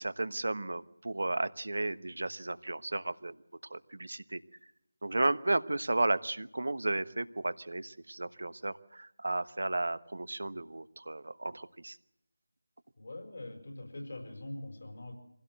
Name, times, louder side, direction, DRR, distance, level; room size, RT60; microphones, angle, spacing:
voice 1, 0.0-3.3 3.7-4.4 5.0-12.0, right 2 dB, 65° right, 14 dB, 1.1 m, -33 dB
voice 2, 13.0-15.1, left 1 dB, 55° left, 5 dB, 5.1 m, -43 dB
25.5 x 16.5 x 7.8 m, 0.81 s
figure-of-eight pair, 165°, 0 cm